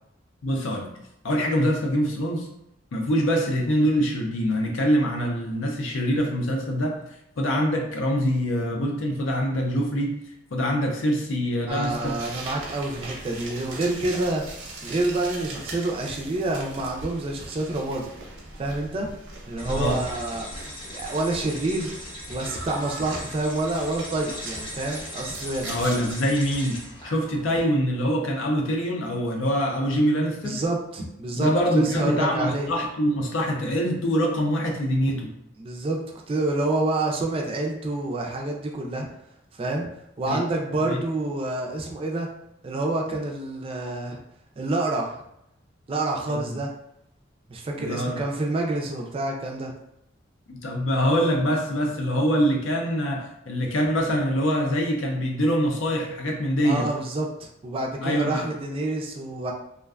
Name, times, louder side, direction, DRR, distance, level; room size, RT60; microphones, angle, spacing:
voice 1, 0.4-0.9 1.2-2.5 2.9-7.0 7.4-10.1 10.5-12.2 19.7-20.0 25.6-26.8 27.0-30.6 31.3-35.3 40.3-40.4 40.9-41.0 46.3-46.6 47.7-48.2 50.5-56.9 58.0-58.5, equal, 90° left, 1 dB, 0.5 m, -24 dB
voice 2, 11.6-14.4 14.8-18.1 18.6-19.1 19.5-20.5 20.8-21.9 22.3-25.7 30.4-32.7 35.6-39.1 39.6-39.9 40.2-42.3 42.6-44.2 44.6-45.2 45.9-46.7 47.5-49.7 56.6-59.5, right 2 dB, 30° right, 0 dB, 0.3 m, -28 dB
sound 1, 11.8-26.2, right 2 dB, 85° right, 0.7 m, -40 dB
sound 2, 19.6-27.5, left 1 dB, 25° left, 0.6 m, -39 dB
2.5 x 2.2 x 2.3 m, 0.80 s
head